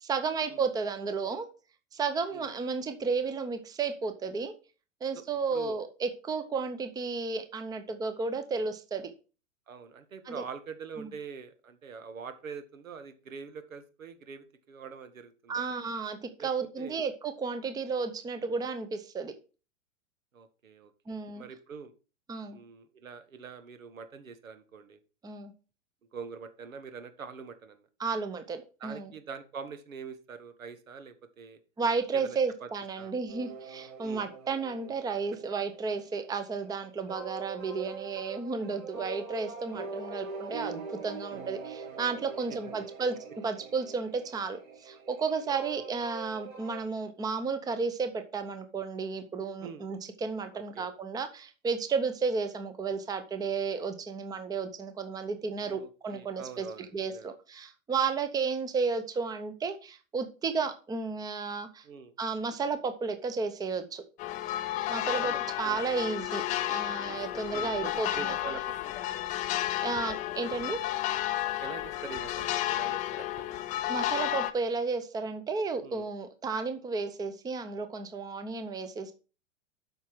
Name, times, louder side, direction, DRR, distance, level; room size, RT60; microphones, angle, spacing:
voice 1, 0.0-1.5 1.9-4.5 5.0-9.1 10.3-10.4 11.0-11.1 15.5-19.3 21.1-21.4 22.3-22.6 25.2-25.5 28.0-29.1 31.8-56.7 56.9-61.8 62.2-64.0 64.9-66.4 66.7-68.3 69.5-70.8 73.9-79.1, right 4 dB, 10° right, 9 dB, 0.8 m, -33 dB
voice 2, 9.7-15.6 16.4-16.5 16.8-17.0 20.3-21.9 22.5-25.0 26.1-27.9 28.8-31.6 32.1-32.7 33.0-33.1 34.0-34.2 42.5-42.9 49.6-49.8 50.5-50.9 55.6-57.3 61.8-62.1 65.2-65.4 65.6-65.8 67.5-69.0 71.6-73.6 75.8-76.1, right 6 dB, 80° right, 11 dB, 1.5 m, -44 dB
sound 1, 33.3-46.8, right 4 dB, 55° right, 4.6 m, -43 dB
sound 2, 64.2-74.5, left 14 dB, 20° left, 0.4 m, -32 dB
8.2 x 6.0 x 4.5 m, 0.34 s
hypercardioid pair, 110°, 40 cm